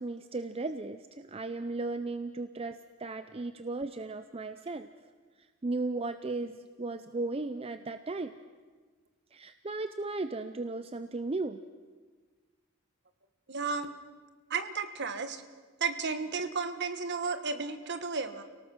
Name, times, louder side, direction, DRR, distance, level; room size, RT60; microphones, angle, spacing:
voice 1, 0.0-4.9 5.6-8.4 9.3-11.6, right 3 dB, 25° right, 10 dB, 0.6 m, -36 dB
voice 2, 13.5-13.9 14.5-15.4 15.8-18.4, right 4 dB, 50° right, 10 dB, 1.3 m, -33 dB
29.0 x 18.0 x 6.2 m, 1.4 s
head